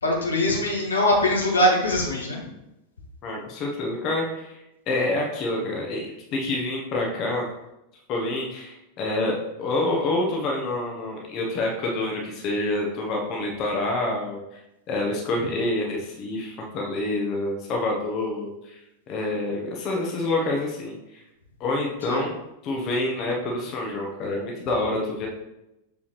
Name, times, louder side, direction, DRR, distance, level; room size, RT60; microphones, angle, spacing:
voice 1, 0.0-2.4 22.1-22.2, left 1 dB, 75° left, -2 dB, 1.7 m, -22 dB
voice 2, 3.2-4.6 4.9-7.5 8.1-14.6 14.9-18.8 19.1-21.0 21.6-22.4 22.6-25.3, left 2 dB, 35° left, 0 dB, 1.3 m, -27 dB
6.9 x 5.2 x 3.3 m, 0.90 s
figure-of-eight pair, 90°, 0 cm